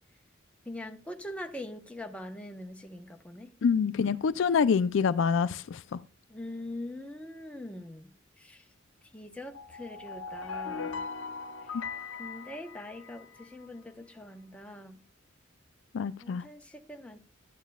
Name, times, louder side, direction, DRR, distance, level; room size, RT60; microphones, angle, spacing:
voice 1, 0.7-3.5 6.3-8.1 8.4-8.6 9.1-11.0 12.2-15.0 16.2-17.2, left 1 dB, 5° left, 0.9 m, -42 dB
voice 2, 3.6-5.8 15.9-16.4, left 6 dB, 65° left, 0.4 m, -26 dB
sound 1, 9.5-13.5, left 5 dB, 85° left, 0.9 m, -39 dB
12.5 x 9.1 x 2.3 m
head